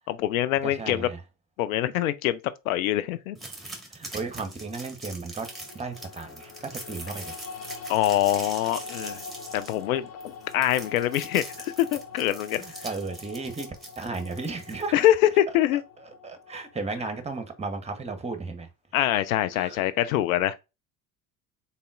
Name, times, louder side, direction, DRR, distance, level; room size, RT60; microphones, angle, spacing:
voice 1, 0.1-1.1 1.6-2.4 2.7-3.4 7.9-9.2 9.5-10.1 10.5-12.6 14.9-15.8 18.9-20.6, left 13 dB, 75° left, 0.5 m, -24 dB
voice 2, 0.6-1.2 3.9-5.5 5.7-7.4 12.6-13.7 14.0-15.0 16.2-18.7 19.5-19.9, right 3 dB, 15° right, 0.9 m, -34 dB
sound 1, 3.3-15.1, right 2 dB, ahead, 1.5 m, -42 dB
sound 2, 5.5-17.7, left 5 dB, 35° left, 0.7 m, -43 dB
4.1 x 3.9 x 2.4 m
hypercardioid pair, 70°, 42 cm